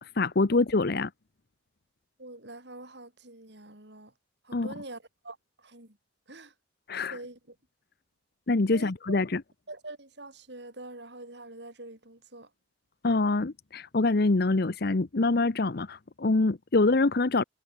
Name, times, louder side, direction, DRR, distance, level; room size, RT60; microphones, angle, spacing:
voice 1, 0.0-1.1 4.5-4.7 6.9-7.1 8.5-9.4 13.0-17.4, left 3 dB, 60° left, 0.8 m, -25 dB
voice 2, 2.2-4.1 4.4-6.0 6.3-6.5 7.1-7.6 8.7-9.2 9.7-12.5, right 2 dB, 65° right, 7.0 m, -45 dB
head